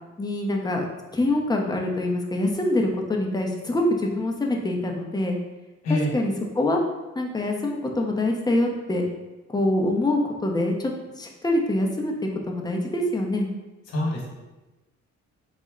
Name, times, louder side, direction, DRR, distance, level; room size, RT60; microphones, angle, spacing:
voice 1, 0.2-0.9 1.1-5.4 5.9-6.8 7.2-9.0 9.5-10.9 11.2-12.1 12.5-13.5, left 1 dB, 15° left, 0 dB, 0.6 m, -25 dB
voice 2, 13.9-14.3, left 1 dB, 55° left, -2 dB, 1.2 m, -25 dB
4.0 x 2.1 x 3.7 m, 1.1 s
cardioid pair, 90°, 30 cm